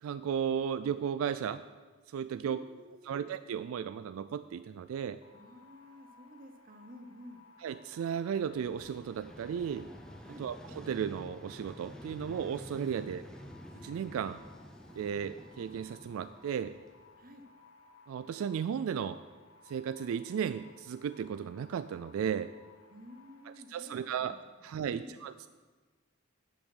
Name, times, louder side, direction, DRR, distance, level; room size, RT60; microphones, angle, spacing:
voice 1, 0.0-1.6 2.1-2.6 3.1-5.2 7.6-9.9 10.4-13.2 13.7-14.4 14.9-16.7 18.1-19.2 19.7-22.5 23.7-24.3 24.6-25.5, right 8 dB, 85° right, 13 dB, 0.3 m, -35 dB
voice 2, 2.4-3.2 5.3-7.5 10.2-10.5 13.0-13.2 17.2-17.5 22.9-25.2, equal, 40° right, 6 dB, 0.9 m, -52 dB
sound 1, 5.2-23.6, left 3 dB, 90° left, 0.9 m, -60 dB
Vehicle, 8.3-17.3, equal, 5° left, 0.6 m, -50 dB
10.0 x 6.1 x 6.2 m, 1.4 s
head